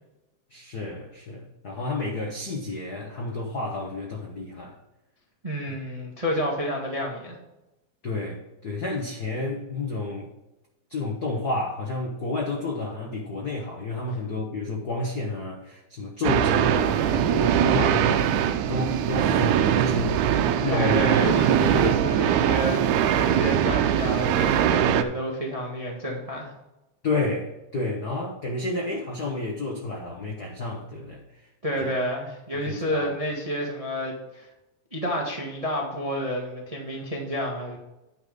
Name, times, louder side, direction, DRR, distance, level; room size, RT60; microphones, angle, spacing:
voice 1, 0.5-4.8 5.7-5.8 8.0-10.3 10.9-20.3 20.6-21.0 21.6-22.1 27.0-31.2 31.8-31.9 32.6-33.1, left 2 dB, 70° left, 0 dB, 0.9 m, -30 dB
voice 2, 5.4-7.4 20.7-26.5 31.6-34.5 34.9-37.8, equal, 40° right, -1 dB, 0.4 m, -30 dB
sound 1, 16.2-25.0, right 9 dB, 80° right, 2.0 m, -22 dB
9.9 x 5.8 x 5.1 m, 0.96 s
omnidirectional pair, 3.6 m